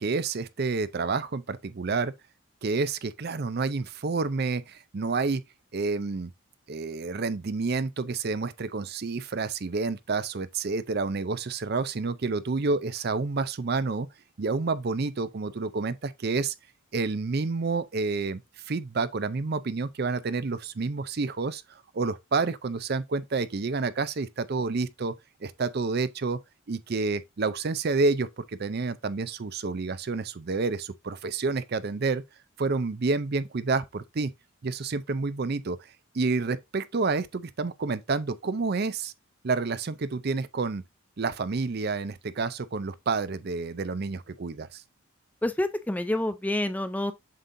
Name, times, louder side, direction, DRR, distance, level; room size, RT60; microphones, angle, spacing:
voice 1, 0.0-2.1 2.6-5.4 5.7-6.3 6.7-14.1 14.4-16.5 16.9-18.4 18.7-25.1 25.4-26.4 26.7-32.2 32.6-34.3 34.6-35.8 36.1-39.1 39.4-40.8 41.2-44.8, right 4 dB, 45° right, 0.5 m, -29 dB
voice 2, 45.4-47.1, left 1 dB, 5° left, 0.4 m, -28 dB
7.5 x 5.4 x 2.7 m
head